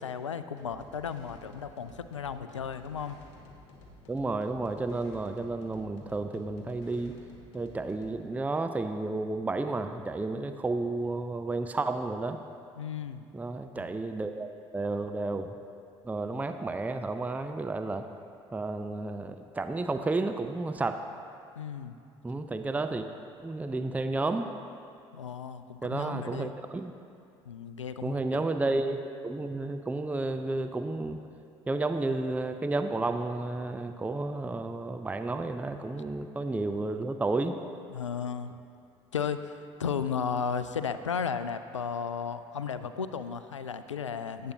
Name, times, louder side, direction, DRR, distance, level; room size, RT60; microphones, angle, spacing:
voice 1, 0.0-3.2 12.8-13.3 13.8-14.0 21.6-22.0 25.1-26.5 27.5-28.5 37.9-38.6 39.1-44.5, left 6 dB, 85° left, 11 dB, 0.4 m, -34 dB
sound 1, 0.6-8.3, left 2 dB, 65° left, 1.3 m, -53 dB
voice 2, 4.1-7.2 7.5-12.4 13.3-15.5 16.0-18.0 18.5-21.0 22.2-23.1 23.4-24.5 25.8-26.9 28.0-31.2 31.7-37.6, right 2 dB, 10° right, 8 dB, 0.5 m, -32 dB
18.0 x 8.4 x 2.8 m, 2.5 s
figure-of-eight pair, 55°, 15 cm